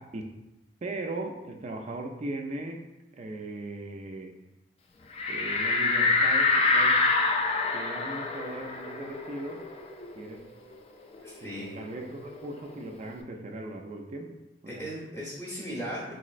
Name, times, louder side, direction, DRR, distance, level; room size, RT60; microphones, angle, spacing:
voice 1, 0.8-2.8 3.1-4.3 5.3-7.1 7.7-9.6 10.1-10.4 11.4-14.3 14.6-14.9, right 2 dB, 40° right, 2 dB, 0.4 m, -38 dB
sound 1, 5.2-10.4 10.7-10.8 11.1-12.8, left 3 dB, 35° left, 0.3 m, -26 dB
voice 2, 11.2-11.8 14.7-16.1, equal, 10° left, -6 dB, 0.8 m, -37 dB
4.0 x 3.0 x 2.4 m, 0.94 s
head